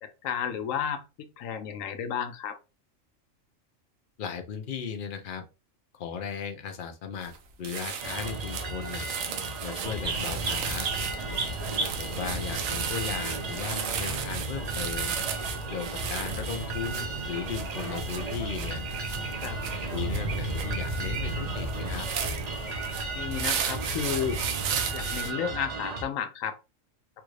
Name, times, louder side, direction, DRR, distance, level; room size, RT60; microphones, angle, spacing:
voice 1, 0.0-2.6 19.4-19.6 23.1-24.4 24.9-26.6, left 8 dB, 80° left, 1.0 m, -32 dB
voice 2, 4.2-5.5 5.9-7.3 7.6-9.1 9.6-10.9 12.0-15.2 15.7-18.8 19.9-22.1, left 6 dB, 55° left, 0.6 m, -36 dB
sound 1, 7.2-7.4 7.6-25.3, right 8 dB, 85° right, 1.0 m, -35 dB
sound 2, 8.0-26.0, right 3 dB, 40° right, 0.6 m, -36 dB
sound 3, 9.8-25.3, right 2 dB, 65° right, 1.1 m, -36 dB
3.4 x 2.4 x 3.1 m
omnidirectional pair, 1.4 m